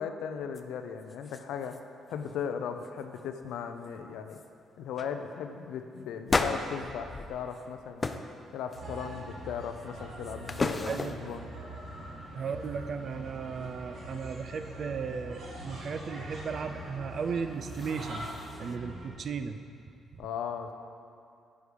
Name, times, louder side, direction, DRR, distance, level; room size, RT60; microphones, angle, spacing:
voice 1, 0.0-1.8 2.1-4.4 4.8-8.2 8.5-11.5 20.2-20.7, left 7 dB, 85° left, 7 dB, 0.5 m, -37 dB
sound 1, 0.5-0.6 1.0-1.8 2.1-2.4 2.8-3.2 3.8-3.9 4.3-4.5 4.9-5.1 6.3-7.7 8.0-8.3 8.7-9.2 9.8-11.4 17.4-18.8, left 3 dB, 30° left, 0.4 m, -35 dB
sound 2, 8.7-19.1, right 1 dB, 70° right, 2.2 m, -43 dB
voice 2, 10.9-11.2 12.3-18.3 18.6-19.6 20.1-20.2, right 5 dB, 55° right, 9 dB, 0.4 m, -35 dB
9.5 x 5.1 x 5.0 m, 2.5 s
cardioid pair, 90°, 0 cm